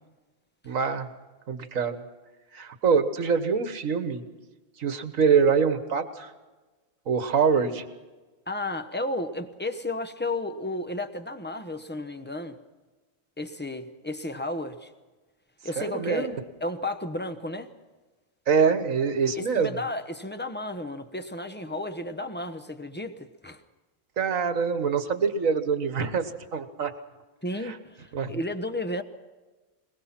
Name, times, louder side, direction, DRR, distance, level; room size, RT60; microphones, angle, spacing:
voice 1, 0.6-1.1 1.5-2.0 2.5-4.2 4.8-6.3 7.1-7.8 15.8-16.4 18.5-19.7 24.2-26.9 27.6-27.8 28.1-28.4, right 6 dB, 70° right, 10 dB, 1.7 m, -25 dB
voice 2, 8.5-12.6 13.4-14.9 15.6-17.7 19.4-23.6 27.4-29.0, left 1 dB, 10° left, 8 dB, 1.0 m, -33 dB
21.5 x 21.0 x 5.9 m, 1.2 s
omnidirectional pair, 1.4 m